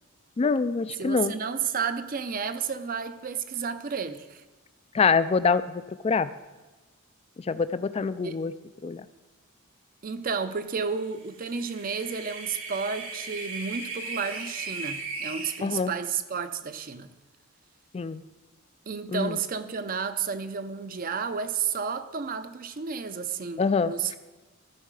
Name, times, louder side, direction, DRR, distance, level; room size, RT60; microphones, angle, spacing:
voice 1, 0.4-1.3 4.9-6.3 7.5-8.5 8.8-9.0 15.6-15.9 17.9-18.2 19.1-19.4 23.6-23.9, left 5 dB, 30° left, 0.3 m, -25 dB
voice 2, 1.0-4.4 8.2-8.4 10.0-17.1 18.9-24.2, right 6 dB, 40° right, 0.5 m, -32 dB
sound 1, 11.3-15.6, right 4 dB, 75° right, 1.6 m, -37 dB
14.0 x 5.5 x 4.8 m
head